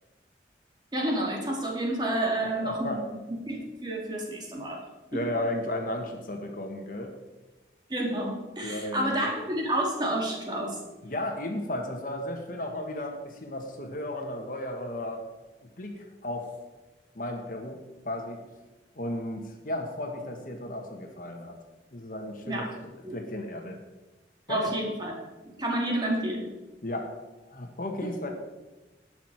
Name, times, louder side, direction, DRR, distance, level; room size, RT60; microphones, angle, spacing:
voice 1, 0.9-3.0 3.3-4.8 7.9-10.8 22.5-22.7 23.0-23.2 24.5-25.1 25.4-26.5 28.0-28.1, right 1 dB, 25° right, -1 dB, 2.2 m, -30 dB
voice 2, 2.4-3.1 5.1-7.1 8.6-9.2 11.0-15.2 15.6-16.6 17.1-18.4 18.9-21.6 21.9-22.7 23.1-23.8 24.5-24.7 26.8-27.2 27.5-28.3, left 1 dB, 50° left, 3 dB, 1.4 m, -34 dB
18.0 x 6.1 x 4.6 m, 1.1 s
head